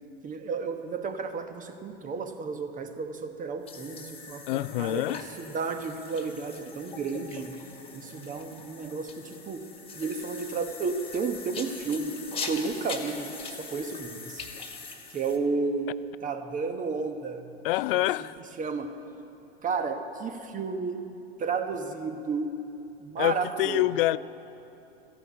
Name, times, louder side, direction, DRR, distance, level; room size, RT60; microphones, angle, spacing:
voice 1, 0.2-7.6 7.9-9.7 9.9-12.2 12.5-14.4 15.1-15.9 16.2-17.5 17.9-18.0 18.6-18.9 19.6-21.0 21.4-22.6 23.0-23.8, right 4 dB, 25° right, 7 dB, 1.2 m, -32 dB
sound 1, 3.6-15.4, left 4 dB, 15° left, 1.8 m, -42 dB
voice 2, 4.5-5.2 17.6-18.4 23.2-24.2, left 17 dB, 60° left, 18 dB, 0.5 m, -26 dB
14.5 x 11.0 x 8.5 m, 2.9 s
hypercardioid pair, 95°, 32 cm